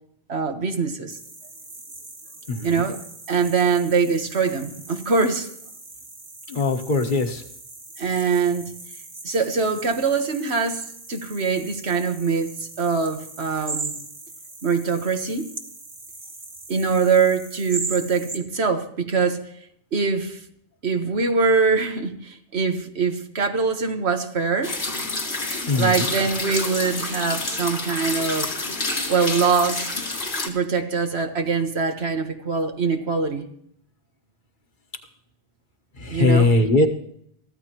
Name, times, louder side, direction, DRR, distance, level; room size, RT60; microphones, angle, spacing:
voice 1, 0.3-1.1 2.6-3.0 3.3-5.5 8.0-8.7 9.2-14.0 14.6-15.5 16.7-19.5 19.9-20.4 20.8-24.7 25.8-28.5 29.1-29.9 30.4-33.5 36.1-36.6, right 5 dB, 90° right, 6 dB, 1.6 m, -23 dB
sound 1, 1.1-18.4, right 3 dB, 50° right, 1.8 m, -39 dB
voice 2, 2.5-2.8 6.5-7.4 25.6-26.1 36.0-36.9, left 3 dB, 50° left, 5 dB, 1.4 m, -21 dB
sound 2, 24.6-30.5, left 2 dB, 85° left, 2.3 m, -28 dB
23.0 x 14.5 x 3.0 m, 0.69 s
omnidirectional pair, 1.0 m